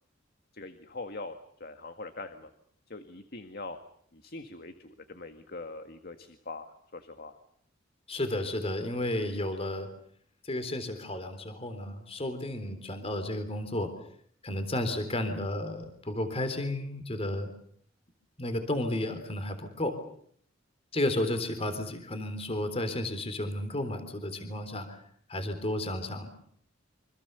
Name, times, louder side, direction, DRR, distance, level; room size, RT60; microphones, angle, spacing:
voice 1, 0.5-2.5 2.9-3.8 4.1-7.4, left 3 dB, 55° left, 8 dB, 1.9 m, -43 dB
voice 2, 8.1-9.9 10.4-13.9 14.4-17.5 18.4-19.9 20.9-25.0 25.3-26.3, left 1 dB, 30° left, 8 dB, 3.7 m, -32 dB
28.0 x 26.0 x 6.9 m, 0.64 s
head